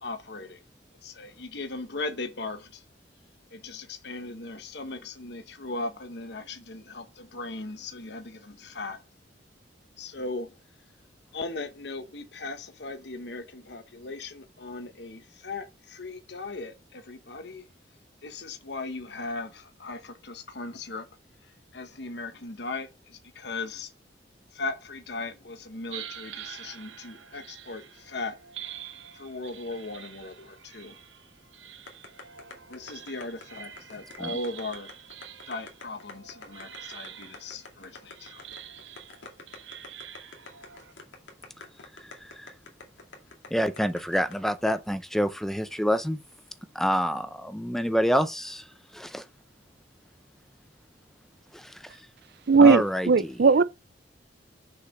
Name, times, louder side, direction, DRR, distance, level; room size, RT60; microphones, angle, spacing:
voice 1, 0.0-0.6 1.0-2.8 3.5-9.0 10.0-10.5 11.3-17.6 18.2-21.1 21.7-23.9 24.5-28.4 29.1-31.0 32.7-34.9 35.5-38.4, left 3 dB, 65° left, 1.1 m, -38 dB
sound 1, 25.9-40.9, right 9 dB, 85° right, 1.0 m, -46 dB
sound 2, 31.9-44.7, left 3 dB, 90° left, 2.3 m, -46 dB
voice 2, 42.2-42.5 43.5-46.2 46.7-48.6 48.9-49.2 51.5-51.9 52.6-53.4, equal, ahead, 0.7 m, -27 dB
voice 3, 52.5-53.6, right 4 dB, 60° right, 0.5 m, -18 dB
6.8 x 4.8 x 6.4 m
head